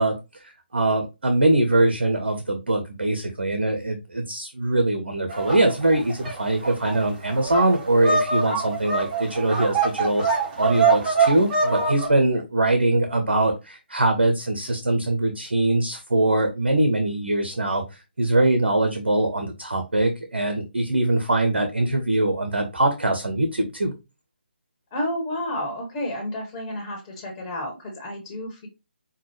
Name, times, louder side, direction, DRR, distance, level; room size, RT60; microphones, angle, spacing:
voice 1, 0.0-17.8 18.2-23.9, right 2 dB, 70° right, 5 dB, 0.9 m, -22 dB
sound 1, 5.3-12.1, right 4 dB, 30° right, 2.3 m, -24 dB
voice 2, 24.9-28.7, left 1 dB, 25° left, 1 dB, 1.2 m, -31 dB
5.6 x 2.3 x 3.2 m, 0.26 s
figure-of-eight pair, 145°, 6 cm